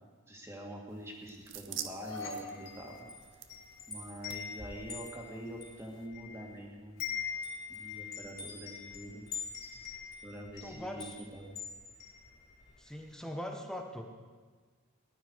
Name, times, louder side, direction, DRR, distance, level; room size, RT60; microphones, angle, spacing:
voice 1, 0.3-3.1 3.9-7.0 7.7-9.2 10.2-11.6, right 1 dB, 10° right, -1 dB, 2.1 m, -45 dB
sound 1, 0.9-6.1, right 10 dB, 60° right, 0.8 m, -48 dB
sound 2, 1.7-4.0, left 3 dB, 65° left, 2.4 m, -45 dB
Wind chime, 2.5-6.6 6.8-12.8, left 6 dB, 45° left, 4.5 m, -43 dB
voice 2, 10.6-11.2 12.8-14.0, equal, 5° left, 2 dB, 1.3 m, -41 dB
19.0 x 12.0 x 4.8 m, 1.5 s
head